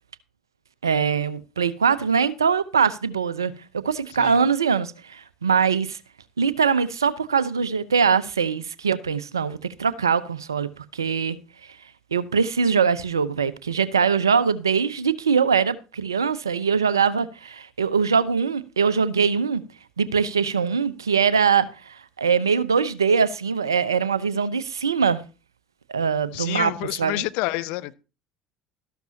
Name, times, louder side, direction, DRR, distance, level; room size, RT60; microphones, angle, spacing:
voice 1, 0.8-6.0 6.4-11.4 12.1-19.6 20.0-25.2 25.9-26.7 27.0-27.2, right 6 dB, 90° right, 0.7 m, -22 dB
voice 2, 26.3-27.9, left 19 dB, 65° left, 0.8 m, -28 dB
13.5 x 11.5 x 2.8 m
hypercardioid pair, 65°, 2 cm